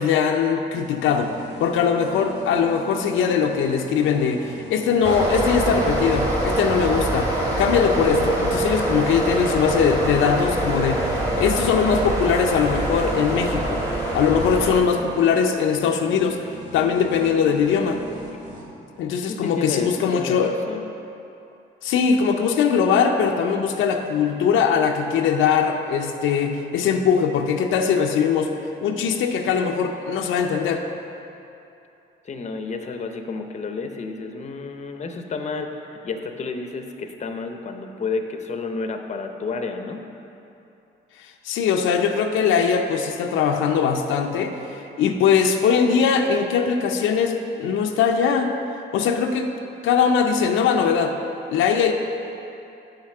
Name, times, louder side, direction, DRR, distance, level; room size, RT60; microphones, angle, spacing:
voice 1, 0.0-1.3 1.6-13.8 14.1-18.0 19.0-20.5 21.8-28.5 28.8-30.8 41.4-48.5 48.9-49.5 49.8-51.1 51.5-51.9, left 6 dB, 85° left, 4 dB, 0.5 m, -21 dB
sound 1, 0.7-18.6, right 1 dB, 65° right, 1.6 m, -40 dB
sound 2, 5.0-14.8, right 1 dB, 15° right, 1.7 m, -24 dB
voice 2, 19.3-20.9 32.2-40.0, left 4 dB, 35° left, 6 dB, 0.6 m, -31 dB
5.8 x 5.7 x 6.5 m, 2.8 s
cardioid pair, 90°, 20 cm